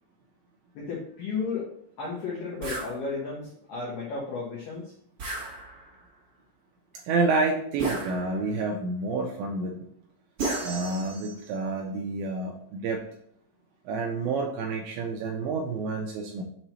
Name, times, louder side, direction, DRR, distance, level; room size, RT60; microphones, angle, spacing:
voice 1, 0.7-1.7 2.0-4.9, left 4 dB, 85° left, -3 dB, 1.9 m, -33 dB
sound 1, 2.6-2.9 5.2-6.0 7.8-8.6 10.4-11.5, right 3 dB, 55° right, 1.6 m, -33 dB
voice 2, 7.1-9.7 10.6-13.0 13.9-16.4, right 3 dB, 80° right, 1 dB, 2.6 m, -29 dB
7.5 x 3.0 x 5.6 m, 0.66 s
omnidirectional pair, 5.8 m